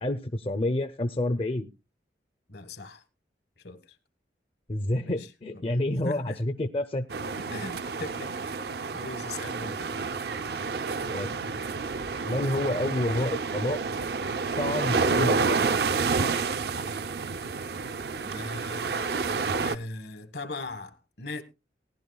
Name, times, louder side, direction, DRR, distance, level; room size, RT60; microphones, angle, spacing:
voice 1, 0.0-1.7 4.7-7.1 7.4-7.5 11.0-11.6 12.2-13.8 14.6-15.7, left 1 dB, 30° left, 0.5 m, -29 dB
voice 2, 2.5-3.0 3.6-3.9 5.0-5.3 6.0-6.4 7.5-8.4 8.9-9.9 18.2-19.1 19.6-21.4, left 2 dB, 65° left, 1.2 m, -39 dB
sound 1, 7.1-19.8, right 4 dB, 60° right, 0.5 m, -29 dB
18.5 x 11.0 x 2.2 m
head